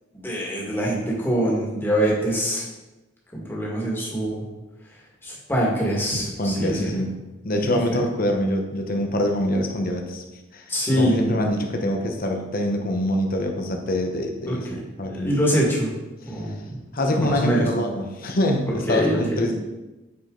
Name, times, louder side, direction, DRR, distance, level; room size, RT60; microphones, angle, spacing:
voice 1, 0.1-2.6 3.3-4.4 5.2-6.9 7.6-8.0 10.7-11.5 14.5-14.8 15.1-15.9 16.3-16.8 17.1-17.7 18.9-19.5, equal, 10° left, -5 dB, 1.9 m, -24 dB
voice 2, 6.1-7.1 7.4-10.2 10.5-15.4 16.3-16.4 16.9-19.5, left 1 dB, 45° left, 3 dB, 1.0 m, -25 dB
8.2 x 4.8 x 3.9 m, 1.1 s
head